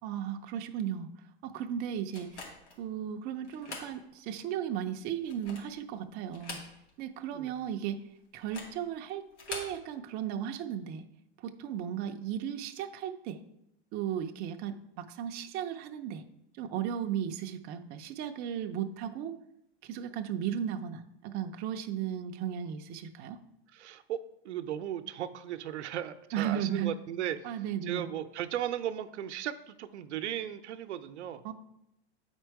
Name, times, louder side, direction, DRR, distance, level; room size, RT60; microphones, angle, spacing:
voice 1, 0.0-1.1 1.4-2.4 2.8-6.6 7.0-8.0 8.3-11.0 11.4-13.4 13.9-16.2 16.6-19.4 19.8-23.4 26.3-26.9 27.4-28.0 31.4-31.5, right 9 dB, 30° right, 6 dB, 0.5 m, -35 dB
sound 1, 2.1-2.8 3.4-3.9 4.4-4.5 5.1-5.8 6.3-7.1 7.3-7.4 8.4-8.8 9.3-9.8, left 3 dB, 85° left, 2.4 m, -44 dB
voice 2, 23.7-24.2 24.4-31.4, right 11 dB, 85° right, 9 dB, 0.7 m, -36 dB
8.7 x 4.5 x 4.7 m, 0.82 s
hypercardioid pair, 135°, 33 cm